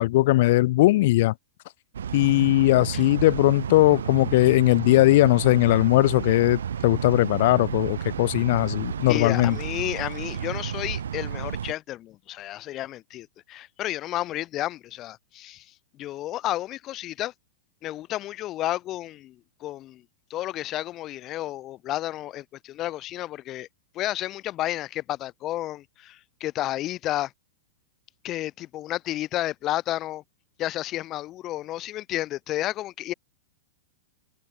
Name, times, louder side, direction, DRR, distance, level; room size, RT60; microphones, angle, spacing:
voice 1, 0.0-1.3 2.1-9.6, left 18 dB, 50° left, 0.7 m, -19 dB
sound 1, 1.9-11.7, right 8 dB, 65° right, 0.6 m, -32 dB
voice 2, 9.1-15.7 16.0-17.3 17.8-19.4 19.6-20.0 20.3-23.7 23.9-27.3 28.2-30.2 30.6-33.1, left 14 dB, 30° left, 4.1 m, -31 dB
open air
figure-of-eight pair, 100°, 0 cm